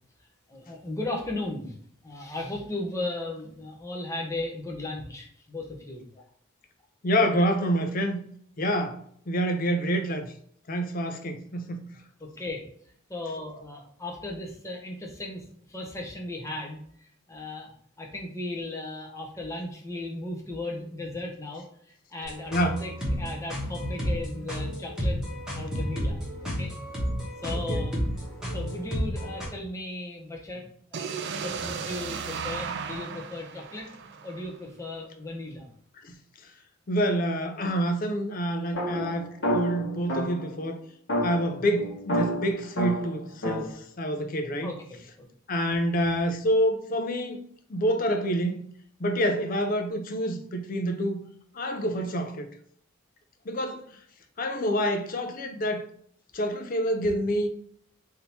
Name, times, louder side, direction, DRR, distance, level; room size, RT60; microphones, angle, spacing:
voice 1, 0.5-1.8 2.0-6.0 12.2-12.6 13.1-25.2 25.5-26.7 27.4-28.0 28.4-30.7 30.9-33.9 34.2-35.7 44.6-45.3, left 2 dB, 15° left, 0.8 m, -36 dB
voice 2, 7.0-8.2 8.6-10.3 10.7-11.9 22.5-22.8 27.5-27.8 36.0-36.1 36.9-40.8 41.2-44.7 45.5-47.4 47.7-48.6 49.0-51.2 51.5-52.5 53.5-53.9 54.4-55.9 56.3-57.5, equal, 40° left, 0.5 m, -27 dB
sound 1, 22.2-29.5, equal, 5° right, 1.1 m, -31 dB
sound 2, 30.9-34.8, right 6 dB, 55° right, 0.4 m, -35 dB
sound 3, 38.7-40.5 41.1-43.7, equal, 55° left, 1.3 m, -29 dB
3.6 x 2.7 x 4.3 m
head